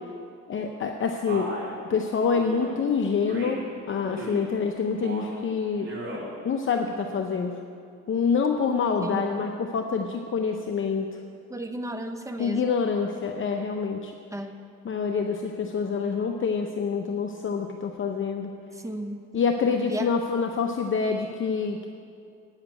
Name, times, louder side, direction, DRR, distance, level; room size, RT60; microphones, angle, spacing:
voice 1, 0.5-1.5 1.9-7.6 8.1-11.2 12.4-14.1 14.8-18.5 19.3-21.9, left 5 dB, 40° left, 4 dB, 0.7 m, -27 dB
Male speech man speaking, 1.3-1.7 2.3-2.7 3.3-3.7 4.1-4.5 4.9-5.4 5.8-6.3, right 2 dB, 40° right, 3.2 m, -36 dB
voice 2, 9.0-9.4 11.5-12.8 14.3-14.6 18.7-19.2 19.9-20.1, equal, 10° right, 6 dB, 0.9 m, -34 dB
9.0 x 7.4 x 8.8 m, 2.4 s
cardioid pair, 90°, 30 cm